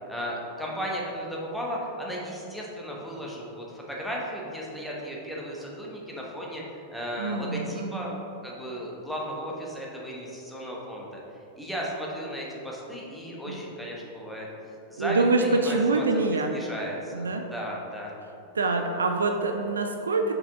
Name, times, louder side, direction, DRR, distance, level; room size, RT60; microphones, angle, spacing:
voice 1, 0.1-8.1 8.4-11.2 11.6-14.5 14.9-16.2 16.5-18.1, equal, ahead, -4 dB, 1.1 m, -35 dB
voice 2, 7.2-8.1 13.5-13.6 15.0-16.6 17.1-17.5 18.5-20.3, right 3 dB, 70° right, 4 dB, 0.4 m, -25 dB
5.6 x 4.8 x 3.6 m, 2.8 s
figure-of-eight pair, 90°, 0 cm